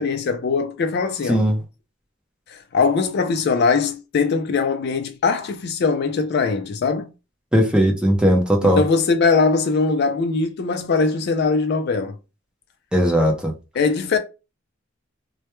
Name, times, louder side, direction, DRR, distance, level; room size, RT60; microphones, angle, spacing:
voice 1, 0.0-1.4 2.5-7.1 8.6-12.2 13.7-14.2, left 4 dB, 55° left, 0.4 m, -21 dB
voice 2, 1.3-1.6 7.5-8.8 12.9-13.5, equal, 5° right, 0.5 m, -18 dB
2.2 x 2.1 x 2.9 m
head